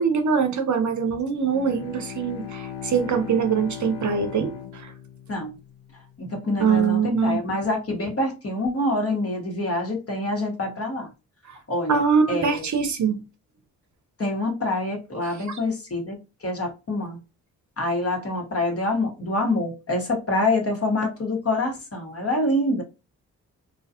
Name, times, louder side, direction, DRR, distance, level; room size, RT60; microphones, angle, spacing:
voice 1, 0.0-4.9 6.6-7.4 11.5-11.6 11.9-13.2 15.2-15.6, right 6 dB, 50° right, 0.7 m, -23 dB
Bowed string instrument, 1.4-6.2, left 9 dB, 75° left, 0.7 m, -38 dB
voice 2, 6.2-11.1 11.7-12.7 14.2-17.2 17.8-22.8, left 2 dB, 40° left, 1.2 m, -26 dB
2.4 x 2.3 x 2.7 m
supercardioid pair, 45°, 38 cm